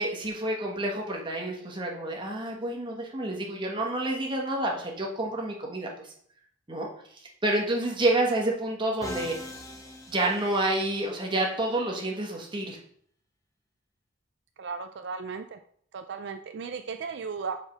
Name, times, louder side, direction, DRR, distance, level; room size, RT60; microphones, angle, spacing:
voice 1, 0.0-6.1 6.7-6.9 7.4-9.4 10.1-12.8, right 1 dB, 25° right, 0 dB, 1.3 m, -29 dB
Musical instrument, 9.0-11.1, left 1 dB, 15° left, 0.9 m, -41 dB
voice 2, 14.6-15.6 15.9-17.6, right 5 dB, 60° right, 7 dB, 0.4 m, -35 dB
4.9 x 4.6 x 5.8 m, 0.62 s
head